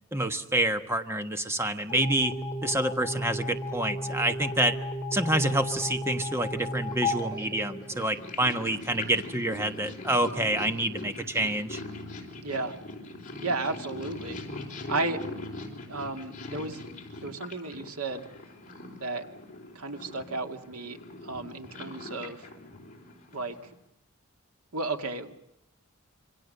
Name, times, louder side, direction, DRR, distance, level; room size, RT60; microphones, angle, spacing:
voice 1, 0.1-2.3 2.6-4.7 5.1-11.8, right 1 dB, 10° right, 8 dB, 1.3 m, -27 dB
sound 1, 1.9-8.4, left 1 dB, 10° left, 3.8 m, -34 dB
Purr, 6.1-23.8, left 2 dB, 35° left, 4.1 m, -42 dB
voice 2, 12.4-12.7 13.4-14.4 14.9-15.2 15.9-16.8 17.2-18.3 19.0-19.2 19.8-21.0 21.2-22.5 23.3-23.6 24.7-25.4, right 3 dB, 85° right, 6 dB, 2.3 m, -33 dB
27.0 x 24.0 x 6.8 m, 0.83 s
head